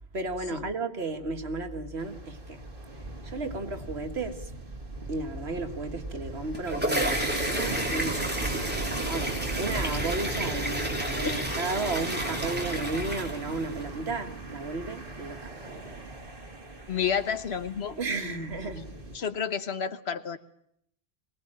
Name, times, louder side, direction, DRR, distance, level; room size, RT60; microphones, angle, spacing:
voice 1, 0.1-2.6 3.2-4.5 5.1-8.6 9.0-16.0 18.0-18.9, right 3 dB, 85° right, 1.9 m, -34 dB
sound 1, 2.0-19.2, right 2 dB, 55° right, 2.6 m, -38 dB
sound 2, 6.3-13.8, right 1 dB, 10° right, 3.2 m, -31 dB
voice 2, 11.2-11.5 16.9-18.7 19.1-20.4, left 7 dB, 85° left, 1.4 m, -31 dB
22.5 x 18.5 x 8.8 m
omnidirectional pair, 1.1 m